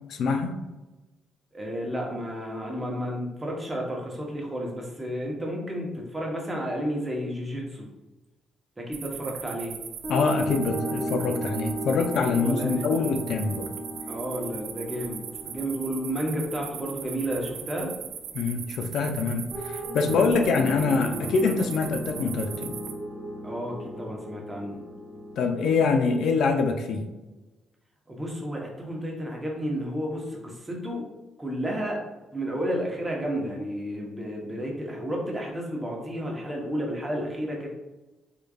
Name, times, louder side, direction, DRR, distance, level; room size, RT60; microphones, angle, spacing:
voice 1, 0.1-0.6 10.1-13.7 18.3-22.7 25.4-27.1, left 4 dB, 70° left, 5 dB, 0.4 m, -25 dB
voice 2, 1.5-7.8 8.8-9.7 12.4-12.8 14.1-17.9 23.4-24.8 28.1-31.1 31.4-32.0 32.3-37.7, equal, 20° right, -1 dB, 1.0 m, -32 dB
sound 1, 8.9-22.9, right 8 dB, 75° right, 0.3 m, -40 dB
sound 2, 10.0-18.1 19.5-26.2, equal, 10° left, 1.0 m, -35 dB
3.7 x 3.2 x 2.3 m, 1.1 s
cardioid pair, 80°, 0 cm